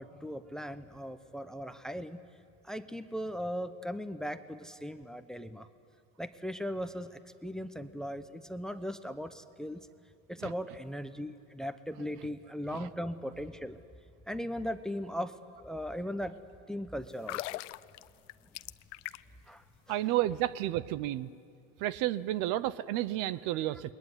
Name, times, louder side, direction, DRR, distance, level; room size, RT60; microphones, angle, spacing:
voice 1, 0.0-2.2 2.6-5.7 6.2-9.9 10.3-13.8 14.3-16.4 16.7-17.6 19.5-20.0, equal, ahead, 11 dB, 0.8 m, -38 dB
sound 1, 17.1-19.5 19.7-19.9, left 20 dB, 80° left, 0.7 m, -41 dB
voice 2, 19.9-21.3 21.8-23.9, right 14 dB, 60° right, 17 dB, 0.9 m, -31 dB
27.5 x 21.5 x 9.8 m, 2.5 s
supercardioid pair, 125°, 37 cm